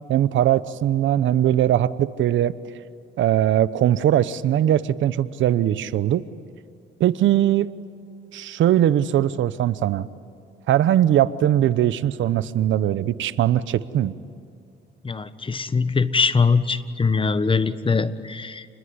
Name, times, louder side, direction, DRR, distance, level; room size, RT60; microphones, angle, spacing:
voice 1, 0.1-2.5 3.2-6.2 7.0-7.7 8.3-10.1 10.7-14.1, right 11 dB, 75° right, 16 dB, 0.9 m, -20 dB
voice 2, 15.0-18.7, left 4 dB, 25° left, 13 dB, 1.3 m, -22 dB
28.5 x 21.0 x 9.7 m, 2.4 s
cardioid pair, 90°, 20 cm